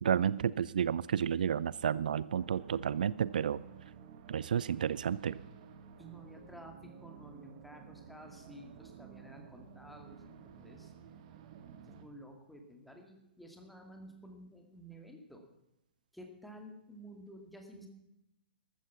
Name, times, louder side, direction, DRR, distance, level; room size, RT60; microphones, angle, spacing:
voice 1, 0.0-3.6 4.3-5.4, right 8 dB, 55° right, 20 dB, 0.4 m, -31 dB
sound 1, 2.3-12.0, right 7 dB, 40° right, 1.6 m, -53 dB
voice 2, 6.0-10.9 11.9-15.5 16.1-17.9, equal, ahead, 3 dB, 2.3 m, -52 dB
14.0 x 13.5 x 5.8 m, 0.88 s
figure-of-eight pair, 115°, 5 cm